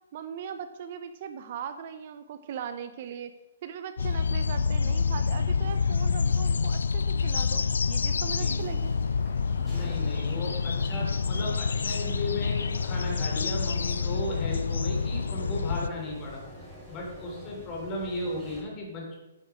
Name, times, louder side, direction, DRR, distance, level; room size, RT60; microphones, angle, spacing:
voice 1, 0.1-3.3 3.6-9.0, right 8 dB, 50° right, 10 dB, 0.7 m, -39 dB
sound 1, 4.0-15.9, left 5 dB, 85° left, 0.3 m, -27 dB
sound 2, 8.4-18.6, left 1 dB, 5° left, 3.8 m, -46 dB
voice 2, 9.7-16.4 16.9-19.1, left 1 dB, 30° left, -1 dB, 3.3 m, -35 dB
8.5 x 6.9 x 5.1 m, 0.96 s
hypercardioid pair, 140°, 0 cm